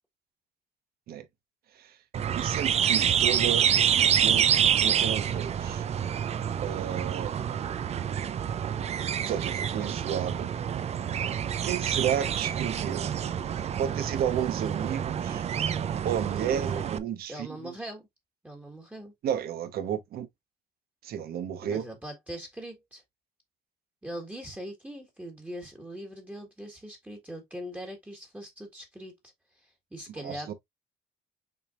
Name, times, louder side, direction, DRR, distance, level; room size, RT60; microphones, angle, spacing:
sound 1, 2.1-17.0, right 8 dB, 40° right, 0.5 m, -27 dB
voice 1, 2.3-4.5 4.8-5.8 6.6-7.3 9.3-10.5 11.6-13.1 13.8-15.4 16.0-17.7 19.2-20.3 21.0-21.8 30.1-30.5, right 9 dB, 65° right, 1.1 m, -32 dB
voice 2, 16.4-16.8 17.3-18.0 18.4-19.1 21.6-23.0 24.0-29.1 29.6-30.5, equal, 10° right, 1.5 m, -41 dB
5.9 x 3.4 x 2.4 m
cardioid pair, 110°, 17 cm